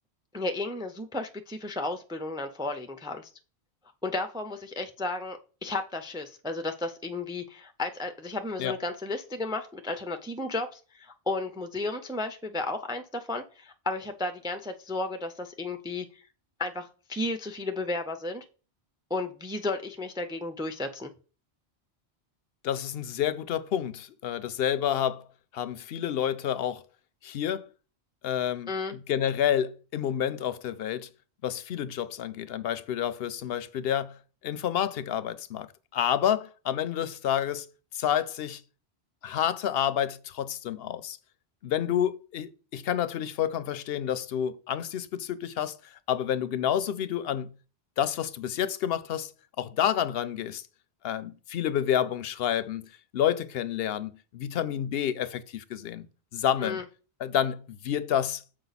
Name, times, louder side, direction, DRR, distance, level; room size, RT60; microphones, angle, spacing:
voice 1, 0.3-3.3 4.0-16.2 16.6-18.4 19.1-21.1 28.7-29.0 56.6-56.8, left 2 dB, 5° right, 0.3 m, -33 dB
voice 2, 22.6-25.2 25.5-26.8 27.2-27.6 28.2-31.1 31.4-34.2 34.4-35.7 35.9-37.7 37.9-38.6 39.2-41.2 41.6-47.5 48.0-49.3 49.6-50.6 51.0-56.1 56.3-56.8 57.2-58.4, left 10 dB, 70° left, 0.7 m, -29 dB
6.8 x 5.0 x 4.0 m
omnidirectional pair, 1.1 m